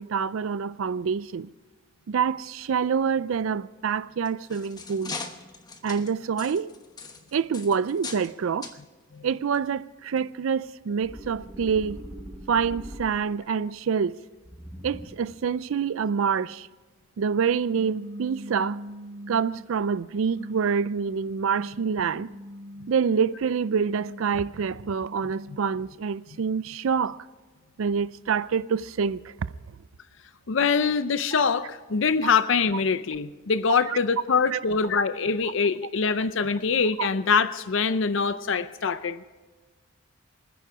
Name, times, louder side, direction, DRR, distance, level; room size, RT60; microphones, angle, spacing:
voice 1, 0.0-1.5 2.1-5.2 5.8-6.7 7.3-8.7 9.2-12.0 12.5-14.1 14.8-16.7 17.2-18.8 19.3-22.3 22.9-27.2 27.8-29.3 32.2-32.3 33.9-34.0 34.5-34.6 37.0-37.1, right 6 dB, 75° right, 0.4 m, -26 dB
sound 1, 4.1-8.3 8.6-8.8 9.5-9.7 10.2-10.3, left 4 dB, 20° left, 1.1 m, -40 dB
sound 2, 11.0-13.5 14.4-15.4, equal, ahead, 3.0 m, -42 dB
sound 3, 17.7-19.7 20.3-23.0 23.6-25.9, equal, 55° right, 0.9 m, -42 dB
voice 2, 30.5-39.2, left 5 dB, 65° left, 0.6 m, -24 dB
25.5 x 10.0 x 4.9 m
head